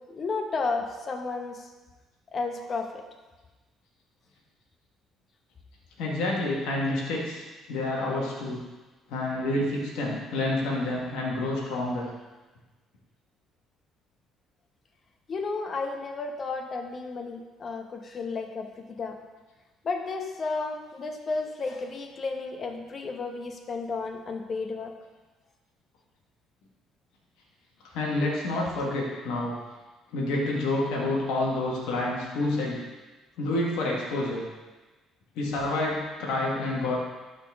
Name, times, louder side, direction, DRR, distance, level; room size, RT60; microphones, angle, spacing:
voice 1, 0.1-1.7 2.3-3.0 15.3-19.2 19.8-24.9, left 4 dB, 45° left, 4 dB, 1.0 m, -32 dB
voice 2, 6.0-7.4 7.7-8.6 9.1-12.1 27.9-29.5 30.1-32.8 33.4-34.4 35.3-37.0, left 2 dB, 75° left, -3 dB, 1.5 m, -28 dB
11.5 x 4.1 x 3.6 m, 1.2 s
hypercardioid pair, 60°, 0 cm